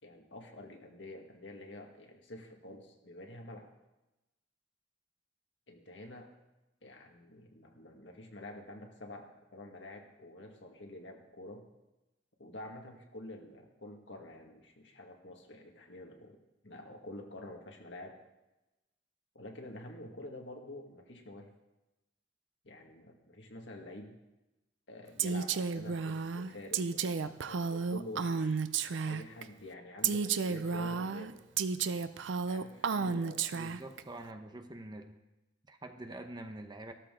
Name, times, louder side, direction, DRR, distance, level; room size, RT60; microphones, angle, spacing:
voice 1, 0.0-3.7 5.7-6.3 6.8-11.7 12.4-16.4 16.6-18.1 19.4-21.5 22.6-24.2 24.9-28.6 28.9-31.4 32.5-33.4, left 1 dB, 80° left, 2 dB, 1.8 m, -48 dB
Female speech woman speaking, 25.2-29.4 30.0-34.0, right 5 dB, 90° right, 0.5 m, -32 dB
voice 2, 33.5-35.2 35.7-36.9, right 1 dB, 25° right, 6 dB, 0.8 m, -46 dB
13.5 x 13.0 x 3.8 m, 0.99 s
head